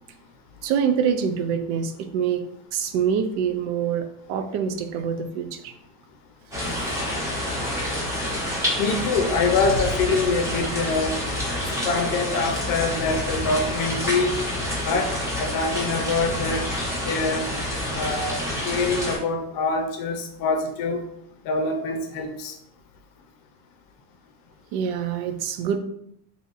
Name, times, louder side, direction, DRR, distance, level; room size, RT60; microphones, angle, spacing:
voice 1, 0.6-5.7 6.7-7.0 24.7-25.8, right 7 dB, 70° right, 9 dB, 0.6 m, -26 dB
sound 1, 6.5-19.2, left 1 dB, 5° right, 1.1 m, -28 dB
voice 2, 8.8-11.2 11.7-14.4 14.8-15.1 15.4-16.7 17.0-17.5 17.9-21.0 21.5-22.5, left 3 dB, 55° left, 4 dB, 0.6 m, -25 dB
2.8 x 2.6 x 3.9 m, 0.75 s
cardioid pair, 140°, 42 cm